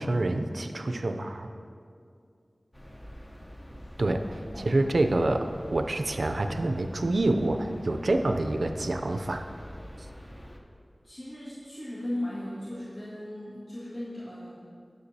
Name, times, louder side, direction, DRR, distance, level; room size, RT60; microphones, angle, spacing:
voice 1, 0.0-1.5 4.0-9.5, right 2 dB, 80° right, 7 dB, 0.4 m, -27 dB
sound 1, 2.7-10.6, equal, 25° left, 0.7 m, -45 dB
voice 2, 11.0-14.7, left 1 dB, 75° left, -11 dB, 1.7 m, -37 dB
9.7 x 6.6 x 2.7 m, 2.3 s
wide cardioid pair, 60°, 0 cm